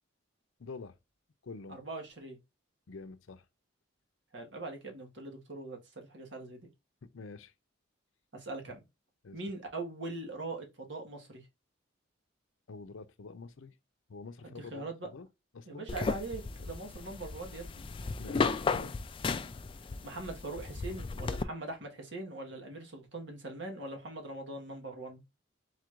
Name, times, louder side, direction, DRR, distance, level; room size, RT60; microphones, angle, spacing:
voice 1, 0.6-1.0 1.4-1.8 2.9-3.4 7.0-7.5 9.2-9.4 12.7-13.7 14.1-15.3 15.5-15.9 18.2-19.0, left 4 dB, 85° left, 0.6 m, -46 dB
voice 2, 1.7-2.4 4.3-6.6 8.3-8.8 9.3-11.5 14.4-15.1 15.7-17.9 20.0-25.2, right 2 dB, 65° right, 1.4 m, -42 dB
sound 1, 15.9-21.4, left 4 dB, 25° left, 0.3 m, -35 dB
4.0 x 2.5 x 4.5 m
head